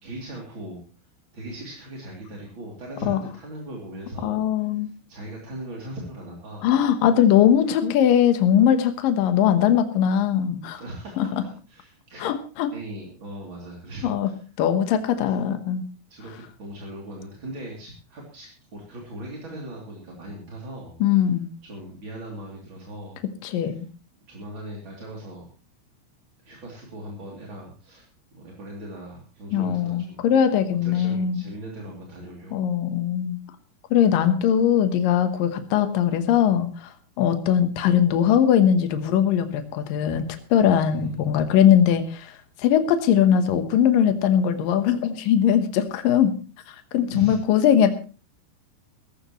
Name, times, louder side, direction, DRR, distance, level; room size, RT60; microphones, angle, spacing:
voice 1, 0.0-0.8 1.3-6.7 10.8-11.3 11.7-12.3 12.7-14.4 16.1-21.3 21.6-23.2 23.5-23.8 24.3-25.4 26.4-30.3 30.8-32.5 40.9-41.3 47.1-47.4, right 1 dB, 30° right, -2 dB, 2.9 m, -39 dB
voice 2, 4.2-4.9 6.6-10.8 11.2-11.3 12.2-12.7 14.0-14.3 14.6-15.8 21.0-21.5 23.4-23.9 29.5-31.4 32.5-33.4 33.9-46.3 46.7-48.0, left 9 dB, 90° left, 8 dB, 1.9 m, -20 dB
19.0 x 15.0 x 3.1 m, 0.35 s
omnidirectional pair, 5.9 m